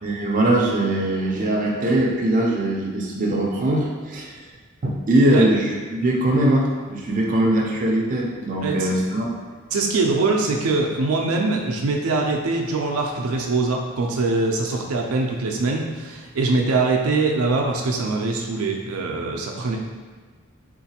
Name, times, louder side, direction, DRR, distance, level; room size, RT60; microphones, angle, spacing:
voice 1, 0.0-4.3 4.8-9.3, right 1 dB, 40° right, -2 dB, 0.5 m, -21 dB
voice 2, 8.6-9.0 9.7-19.8, right 3 dB, 90° right, 0 dB, 0.4 m, -23 dB
3.8 x 2.5 x 2.8 m, 1.5 s
head